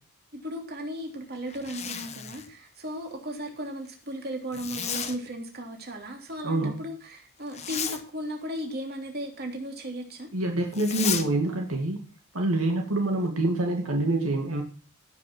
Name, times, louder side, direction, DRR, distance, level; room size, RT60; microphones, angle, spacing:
voice 1, 0.3-10.3, equal, 45° right, 2 dB, 3.2 m, -36 dB
Zipper (clothing), 1.5-2.5 4.5-5.2 7.5-8.0 10.7-11.3, left 8 dB, 30° left, 1.2 m, -33 dB
voice 2, 6.4-6.8 10.3-12.0 12.3-14.6, right 2 dB, 70° right, 2 dB, 2.2 m, -26 dB
17.0 x 6.4 x 6.2 m, 0.38 s
head